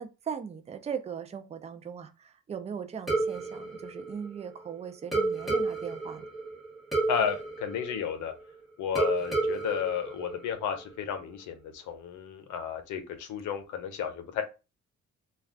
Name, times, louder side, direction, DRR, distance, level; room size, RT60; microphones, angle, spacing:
voice 1, 0.0-6.2, right 7 dB, 20° right, 0.4 m, -39 dB
sound 1, 3.1-4.7 5.1-8.5 9.0-10.9, right 3 dB, ahead, 0.9 m, -31 dB
voice 2, 7.1-8.3 8.8-14.4, left 8 dB, 80° left, 0.6 m, -32 dB
2.4 x 2.3 x 3.4 m
cardioid pair, 90°, 30 cm